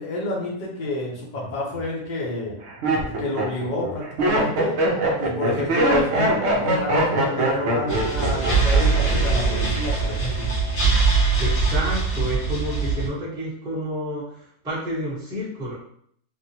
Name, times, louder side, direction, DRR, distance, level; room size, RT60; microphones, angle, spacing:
voice 1, 0.0-2.6 3.0-4.8 5.2-10.5, left 2 dB, 40° left, -3 dB, 0.8 m, -29 dB
Laughter, 1.4-1.8 2.5-9.1 9.3-9.9, right 1 dB, 60° right, 0.8 m, -23 dB
voice 2, 5.8-6.2 6.5-6.6 11.4-15.7, equal, 5° right, -8 dB, 0.8 m, -30 dB
sound 1, 7.9-13.1, right 4 dB, 80° left, 1.4 m, -22 dB
3.4 x 2.1 x 2.8 m, 0.66 s
omnidirectional pair, 1.5 m